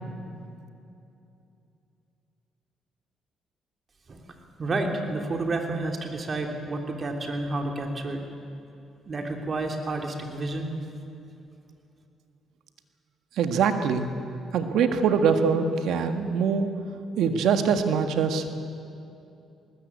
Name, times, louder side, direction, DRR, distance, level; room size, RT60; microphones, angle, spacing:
voice 1, 4.6-8.2 9.0-10.7, right 2 dB, 40° right, 3 dB, 3.2 m, -30 dB
voice 2, 13.4-14.1 14.5-16.7 17.2-18.4, right 6 dB, 80° right, 7 dB, 1.7 m, -23 dB
20.0 x 19.5 x 8.4 m, 2.7 s
cardioid pair, 90°, 0 cm